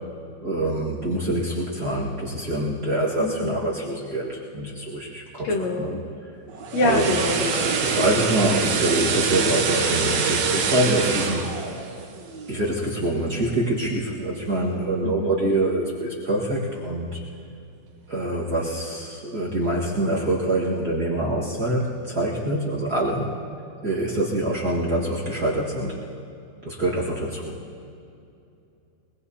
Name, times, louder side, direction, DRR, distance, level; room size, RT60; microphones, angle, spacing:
voice 1, 0.4-5.5 5.8-5.9 6.8-7.2 7.8-11.4 12.5-17.2 18.1-23.3 23.8-26.0 26.6-27.6, right 1 dB, 40° right, -6 dB, 1.7 m, -25 dB
voice 2, 3.2-3.6 5.4-6.0 6.7-7.7 15.0-15.3, left 2 dB, 65° left, 1 dB, 2.2 m, -25 dB
sound 1, 6.5-12.7 13.0-13.2, right 5 dB, 65° right, 2.2 m, -25 dB
23.5 x 21.5 x 2.8 m, 2.6 s
omnidirectional pair, 3.7 m